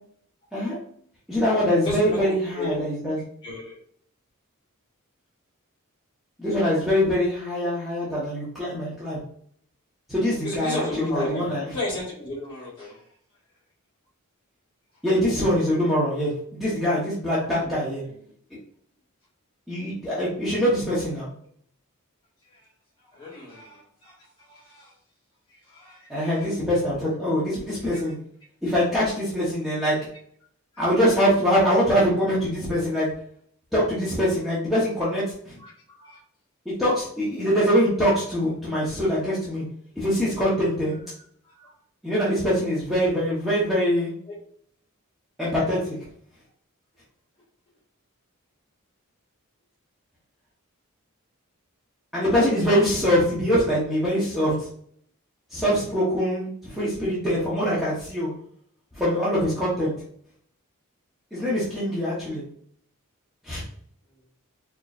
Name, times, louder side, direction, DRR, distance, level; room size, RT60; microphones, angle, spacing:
voice 1, 1.3-3.2 6.4-9.2 10.1-11.6 15.0-18.0 19.7-21.3 26.1-28.1 28.6-30.0 30.8-33.1 33.7-35.6 36.6-39.6 40.0-41.0 42.0-44.1 45.4-46.0 52.1-54.5 55.5-58.3 58.9-59.9 61.3-62.4 63.4-63.6, equal, ahead, -9 dB, 1.0 m, -23 dB
voice 2, 1.8-2.8 3.4-3.8 7.6-7.7 10.4-13.0 17.4-17.7 22.4-22.7 23.0-24.9 25.5-26.5 27.8-28.1 30.7-30.8 35.6-36.2 41.5-41.7 44.3-44.4, left 1 dB, 20° left, -6 dB, 1.6 m, -34 dB
4.5 x 3.0 x 2.5 m, 0.63 s
head